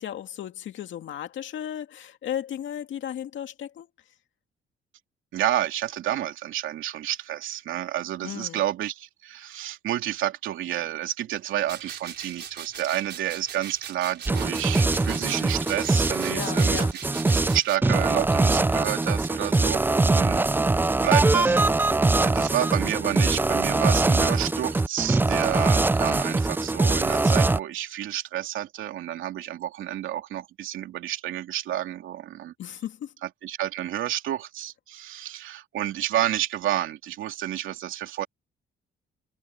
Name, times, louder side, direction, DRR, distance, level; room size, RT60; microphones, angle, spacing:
voice 1, 0.0-3.9 8.2-8.6 16.3-16.9 32.6-33.1, left 10 dB, 70° left, 2.4 m, -35 dB
voice 2, 5.3-16.8 17.5-20.4 21.0-21.6 22.2-32.5 33.2-38.3, right 12 dB, 80° right, 2.8 m, -30 dB
sound 1, 11.7-17.8, right 8 dB, 60° right, 4.5 m, -40 dB
sound 2, 14.3-27.6, right 2 dB, 10° right, 0.4 m, -22 dB
cardioid pair, 90°, 20 cm